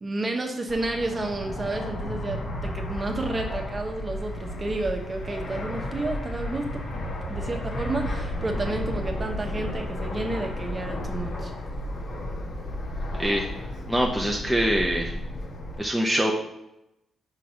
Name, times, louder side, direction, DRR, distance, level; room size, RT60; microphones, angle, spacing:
voice 1, 0.0-6.9 7.3-11.5, right 2 dB, 30° right, 3 dB, 1.0 m, -31 dB
Fixed-wing aircraft airplane, 0.7-15.8, left 1 dB, 55° left, 1.2 m, -33 dB
voice 2, 13.9-15.1 15.8-16.3, equal, ahead, -1 dB, 0.7 m, -24 dB
4.9 x 3.9 x 5.8 m, 0.89 s
cardioid pair, 100°, 0 cm